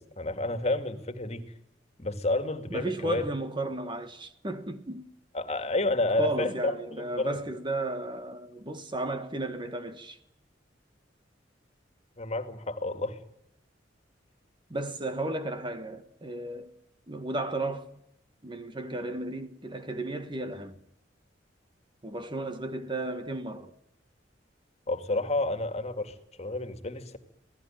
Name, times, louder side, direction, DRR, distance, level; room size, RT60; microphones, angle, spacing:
voice 1, 0.0-1.4 2.0-3.2 5.3-7.4 12.2-13.2 24.9-27.2, left 2 dB, 35° left, 2.4 m, -30 dB
voice 2, 2.7-5.1 6.2-10.2 14.7-16.7 17.1-17.9 18.4-20.8 22.0-23.7, right 2 dB, 25° right, 1.6 m, -34 dB
27.0 x 18.0 x 9.3 m
head